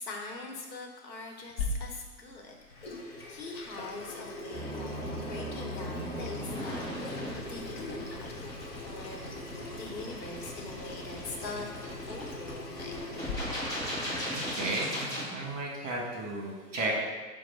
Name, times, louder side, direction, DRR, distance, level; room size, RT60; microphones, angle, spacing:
voice 1, 0.0-2.5 3.3-6.9 7.4-8.5 8.8-9.2 9.7-11.7 12.1-13.2, left 3 dB, 90° left, 1 dB, 1.0 m, -43 dB
Water tap faucet / Sink (filling or washing), 1.6-13.3, left 2 dB, 40° left, 0.5 m, -41 dB
sound 1, 4.5-15.2, equal, 10° left, 1.1 m, -37 dB
voice 2, 14.0-17.0, right 2 dB, 45° right, -1 dB, 1.1 m, -34 dB
4.6 x 2.1 x 4.3 m, 1.3 s
hypercardioid pair, 140°, 50 cm